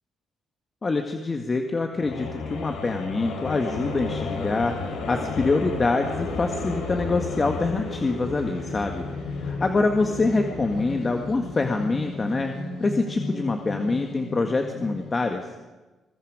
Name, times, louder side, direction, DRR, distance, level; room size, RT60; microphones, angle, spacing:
voice 1, 0.8-9.0 9.4-12.5 12.8-15.5, left 3 dB, 30° left, 4 dB, 1.7 m, -25 dB
sound 1, 2.0-15.2, left 3 dB, 85° left, 4.3 m, -33 dB
28.0 x 21.0 x 5.0 m, 1.2 s
cardioid pair, 90°, 0 cm